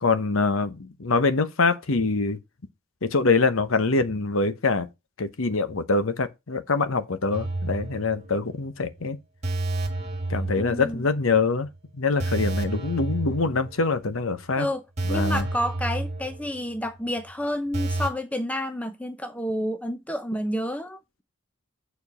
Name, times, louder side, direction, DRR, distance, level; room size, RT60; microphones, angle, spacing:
voice 1, 0.0-2.4 3.0-4.9 5.2-9.2 10.3-11.7 11.9-14.7 15.1-15.4, left 3 dB, 70° left, 0.9 m, -24 dB
sound 1, 7.3-8.6 8.9-9.0 9.4-11.4 11.6-11.8 12.2-14.1 14.4-14.5 15.0-16.9 17.2-17.3 17.7-18.1, right 2 dB, 30° right, 1.7 m, -30 dB
voice 2, 10.6-11.0 14.6-21.2, equal, 5° left, 0.6 m, -30 dB
7.1 x 4.6 x 5.5 m
head